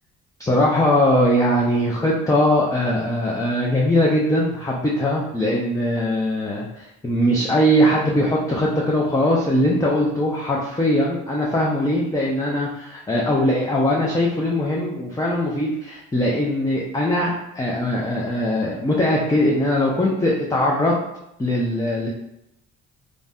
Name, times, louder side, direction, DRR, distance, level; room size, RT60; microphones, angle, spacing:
voice 1, 0.4-20.9 21.4-22.1, left 1 dB, 10° left, -3 dB, 0.4 m, -21 dB
2.5 x 2.1 x 3.5 m, 0.84 s
cardioid pair, 90°, 30 cm